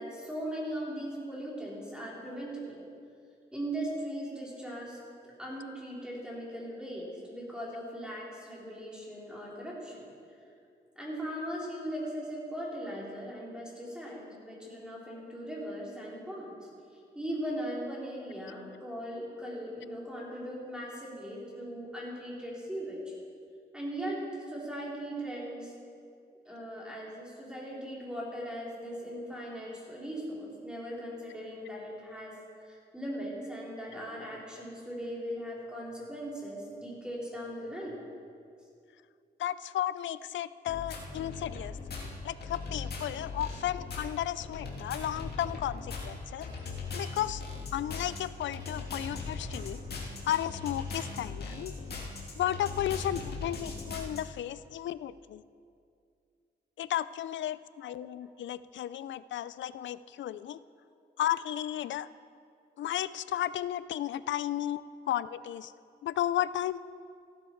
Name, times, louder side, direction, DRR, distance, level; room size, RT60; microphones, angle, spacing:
voice 1, 0.0-2.8 3.5-5.0 5.4-10.1 11.0-16.7 17.1-23.1 23.7-25.7 26.5-38.0 48.8-48.9 57.8-57.9, equal, 5° right, -5 dB, 3.8 m, -39 dB
voice 2, 39.4-41.8 42.2-46.5 46.9-47.4 47.7-49.8 50.3-51.7 52.4-55.4 56.8-60.6 61.2-62.1 62.8-65.7 66.0-66.8, left 12 dB, 85° left, 17 dB, 0.4 m, -33 dB
sound 1, 40.7-54.2, left 4 dB, 60° left, 2.0 m, -39 dB
15.5 x 11.0 x 4.6 m, 2.3 s
wide cardioid pair, 110°, 19 cm